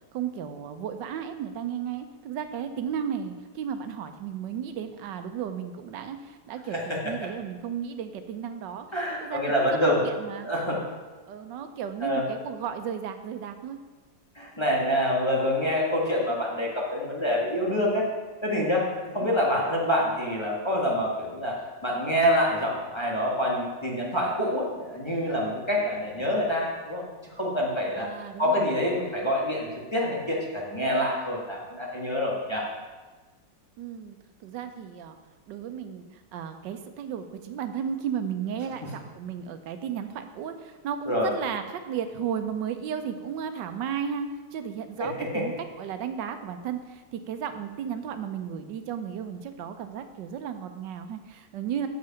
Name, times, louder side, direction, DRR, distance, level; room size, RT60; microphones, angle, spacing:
voice 1, 0.1-8.9 9.2-10.5 11.3-13.8 19.2-19.3 28.0-28.7 33.8-35.2 35.5-51.9, right 8 dB, 85° right, 8 dB, 1.3 m, -34 dB
voice 2, 8.9-10.0 10.4-10.8 12.0-12.2 14.3-18.0 18.4-18.9 19.1-21.5 21.8-27.0 27.3-28.1 28.4-32.7 41.1-41.3 45.0-45.4, equal, 15° left, -4 dB, 1.4 m, -26 dB
7.7 x 6.7 x 5.7 m, 1.3 s
omnidirectional pair, 1.9 m